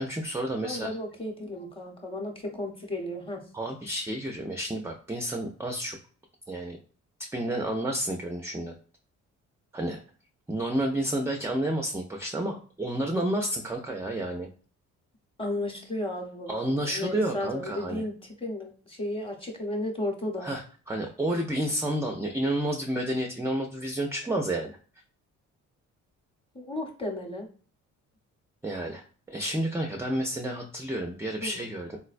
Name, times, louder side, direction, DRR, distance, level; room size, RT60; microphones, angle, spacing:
voice 1, 0.0-0.9 3.5-6.0 6.5-6.8 7.3-8.7 9.7-10.0 10.5-14.5 16.5-18.0 20.4-20.6 20.9-24.8 28.6-29.0 29.3-32.0, right 1 dB, 10° right, 2 dB, 0.4 m, -30 dB
voice 2, 0.6-3.4 15.4-18.1 18.4-20.5 26.5-27.5 31.4-31.6, left 1 dB, 20° left, 1 dB, 0.8 m, -34 dB
3.8 x 2.1 x 2.5 m, 0.40 s
cardioid pair, 90°, 30 cm